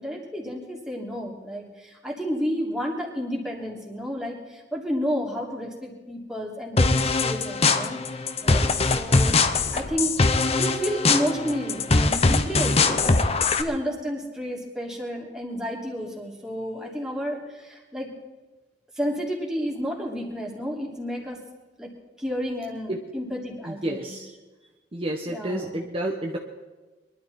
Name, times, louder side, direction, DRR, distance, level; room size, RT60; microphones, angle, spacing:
voice 1, 0.0-8.0 8.4-9.4 9.7-10.2 10.6-13.2 13.6-18.1 19.0-21.4 21.8-21.9 22.2-24.1 25.3-25.7, equal, 5° right, -3 dB, 3.1 m, -31 dB
sound 1, 6.8-13.6, left 3 dB, 35° left, 0.8 m, -22 dB
voice 2, 23.6-24.3 24.9-26.4, right 1 dB, 30° right, 0 dB, 1.2 m, -30 dB
23.0 x 12.0 x 4.3 m, 1.2 s
head